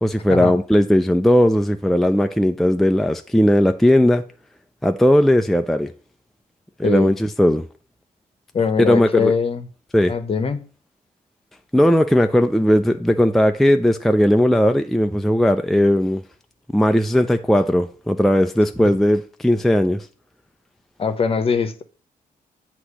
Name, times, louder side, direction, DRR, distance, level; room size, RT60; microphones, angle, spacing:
voice 1, 0.0-4.2 4.8-5.9 6.8-7.7 8.8-9.3 9.9-10.1 11.7-16.2 16.7-20.1, equal, ahead, 0.4 m, -17 dB
voice 2, 6.8-7.1 8.5-9.7 10.1-10.6 18.8-18.9 21.0-21.8, left 5 dB, 40° left, 0.9 m, -22 dB
8.0 x 3.0 x 6.1 m
cardioid pair, 90°, 15 cm